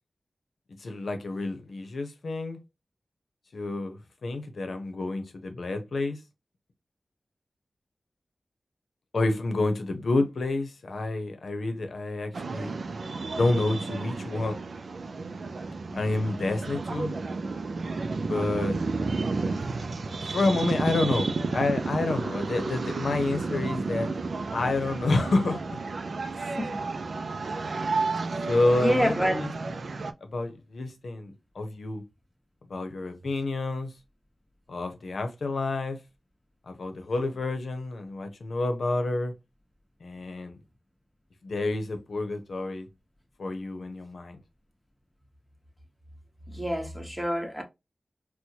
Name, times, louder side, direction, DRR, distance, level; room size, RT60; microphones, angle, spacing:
voice 1, 0.8-2.6 3.5-6.2 9.1-12.7 13.4-14.6 15.9-17.1 18.3-18.8 20.3-24.1 24.5-25.6 27.8-27.9 28.5-29.5 30.2-32.0 32.7-33.9 34.7-36.0 36.7-39.3 40.0-40.6 41.4-42.9 43.4-44.4, left 2 dB, 80° left, 0.8 m, -29 dB
sound 1, 12.3-30.1, right 3 dB, 75° right, 0.4 m, -32 dB
voice 2, 26.4-26.8 28.7-29.4 46.5-47.6, equal, 5° right, 1.1 m, -28 dB
4.3 x 2.2 x 2.8 m
wide cardioid pair, 70°, 0 cm